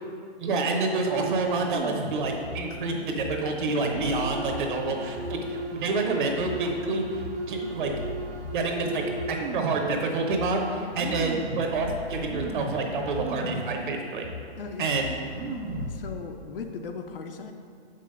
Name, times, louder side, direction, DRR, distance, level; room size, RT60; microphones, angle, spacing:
voice 1, 0.4-7.9 8.5-9.0 9.3-14.3 14.8-15.1, right 3 dB, 50° right, 2 dB, 1.0 m, -28 dB
sound 1, 0.9-2.2 2.6-2.8 3.8-9.9 10.5-10.6 10.9-11.8 12.2-13.8 14.1-14.2 14.9-15.0 15.2-16.0 16.5-16.8, right 3 dB, 70° right, 0.9 m, -35 dB
sound 2, 2.4-5.6 5.9-9.5 9.8-13.5 13.7-16.2, left 3 dB, 85° left, 1.9 m, -40 dB
voice 2, 14.6-14.9 15.9-17.5, left 5 dB, 55° left, 5 dB, 0.7 m, -37 dB
5.8 x 5.4 x 5.3 m, 2.3 s
hypercardioid pair, 165°, 32 cm